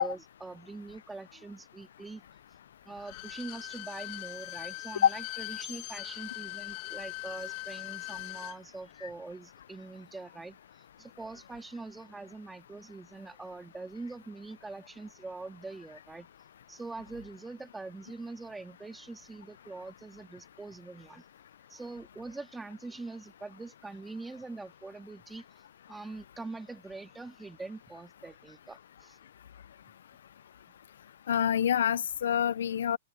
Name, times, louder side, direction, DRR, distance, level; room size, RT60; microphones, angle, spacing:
voice 1, 0.0-2.2 2.9-16.3 16.7-21.2 21.7-25.4 25.9-29.2, right 3 dB, 5° right, 2.0 m, -43 dB
Bowed string instrument, 2.9-8.6 8.9-9.0, left 21 dB, 30° left, 1.8 m, -41 dB
voice 2, 31.3-33.0, left 9 dB, 65° left, 0.3 m, -26 dB
hypercardioid pair, 175°, 0 cm